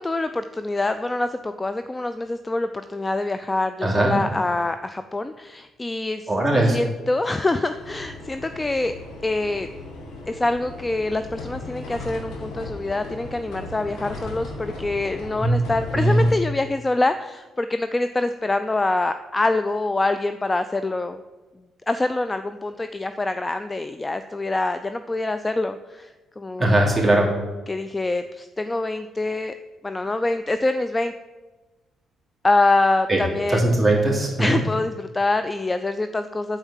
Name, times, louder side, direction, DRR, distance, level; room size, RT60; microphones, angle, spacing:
voice 1, 0.0-6.3 6.6-8.9 9.2-9.7 10.3-21.2 21.9-26.8 27.7-29.5 29.8-31.1 32.4-33.7 34.4-36.6, left 2 dB, 20° left, 10 dB, 0.4 m, -25 dB
voice 2, 3.8-4.2 6.3-6.8 15.4-15.6 15.9-16.3 26.6-27.3 33.1-33.2 33.5-34.6, right 1 dB, 5° right, -3 dB, 2.8 m, -19 dB
sound 1, 7.7-16.3, left 2 dB, 85° left, 1.9 m, -37 dB
9.1 x 4.5 x 7.3 m, 1.2 s
cardioid pair, 90°, 0 cm